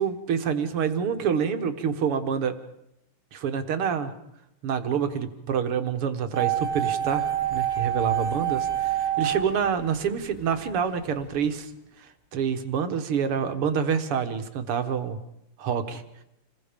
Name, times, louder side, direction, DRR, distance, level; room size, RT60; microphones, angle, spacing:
voice 1, 0.0-2.5 3.3-4.1 4.6-8.6 8.9-11.7 12.0-15.2 15.6-16.0, right 7 dB, 90° right, 8 dB, 2.4 m, -27 dB
sound 1, 6.3-10.4 10.7-10.8, right 11 dB, 25° left, 5.5 m, -27 dB
28.5 x 20.5 x 5.2 m, 0.82 s
omnidirectional pair, 2.4 m